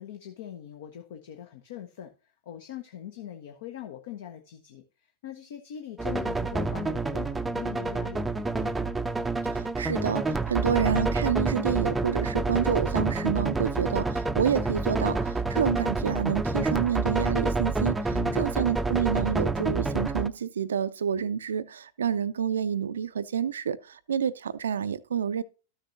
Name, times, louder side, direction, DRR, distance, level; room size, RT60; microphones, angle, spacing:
voice 1, 0.0-9.0 18.1-18.8, left 11 dB, 55° left, 0.9 m, -42 dB
sound 1, 6.0-20.3, right 3 dB, 10° right, 0.6 m, -28 dB
voice 2, 9.5-25.4, right 8 dB, 65° right, 0.5 m, -28 dB
13.0 x 6.5 x 2.6 m
figure-of-eight pair, 90°, 0 cm